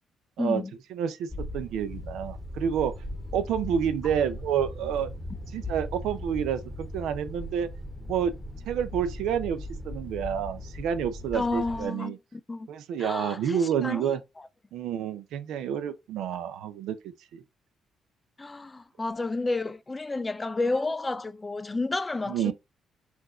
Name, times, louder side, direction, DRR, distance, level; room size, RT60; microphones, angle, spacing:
voice 1, 0.4-0.7 11.3-12.7 13.0-14.1 18.4-22.5, left 3 dB, 20° left, 0.5 m, -31 dB
voice 2, 0.9-2.9 3.3-5.1 5.5-6.6 6.9-7.7 8.1-8.3 8.7-12.2 12.7-14.2 14.7-17.4 22.3-22.5, right 8 dB, 85° right, 0.6 m, -29 dB
sound 1, 1.3-11.8, left 1 dB, ahead, 1.0 m, -38 dB
4.5 x 2.6 x 4.2 m
cardioid pair, 90°, 0 cm